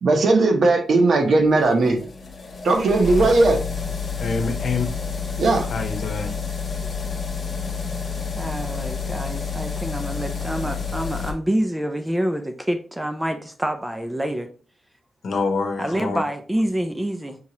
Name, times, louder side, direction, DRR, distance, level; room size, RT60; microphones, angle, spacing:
voice 1, 0.0-2.0 2.6-3.6 5.4-5.7, right 2 dB, 65° right, 0.9 m, -17 dB
sound 1, 1.0-11.3, left 5 dB, 40° left, 1.0 m, -29 dB
voice 2, 4.2-4.9 5.7-6.3 15.2-16.2, left 4 dB, 65° left, 1.0 m, -26 dB
voice 3, 8.3-14.5 15.8-17.4, right 1 dB, 10° right, 0.4 m, -27 dB
5.6 x 2.8 x 2.9 m
wide cardioid pair, 125°, 0 cm